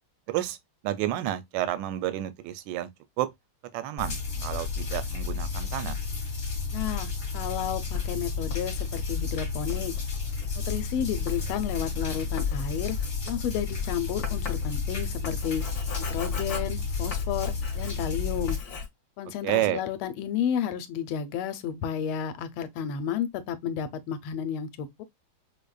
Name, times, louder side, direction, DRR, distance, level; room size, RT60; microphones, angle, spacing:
voice 1, 0.3-0.6 0.8-2.9 3.2-3.3 3.7-6.0 19.4-19.8, right 13 dB, 75° right, 1.1 m, -30 dB
sound 1, 4.0-18.6, left 5 dB, 40° left, 1.3 m, -31 dB
voice 2, 6.7-9.9 10.5-13.0 13.3-15.6 16.1-18.6 19.2-25.0, left 8 dB, 90° left, 1.4 m, -32 dB
Writing, 7.9-18.2 18.5-18.9, left 6 dB, 60° left, 1.1 m, -38 dB
5.1 x 2.1 x 2.3 m
omnidirectional pair, 2.2 m